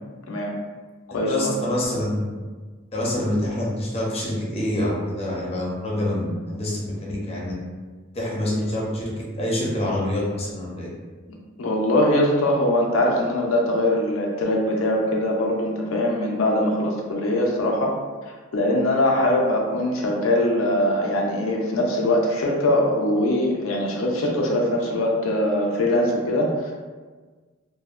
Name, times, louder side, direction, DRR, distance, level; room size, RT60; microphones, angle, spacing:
voice 1, 0.3-0.6 1.1-1.6 11.6-17.9 18.2-26.7, left 1 dB, 75° left, 0 dB, 0.5 m, -22 dB
voice 2, 1.3-2.3 2.9-7.5 8.1-9.0 9.3-10.9, left 1 dB, 30° left, -4 dB, 0.6 m, -26 dB
2.6 x 2.1 x 2.3 m, 1.4 s
head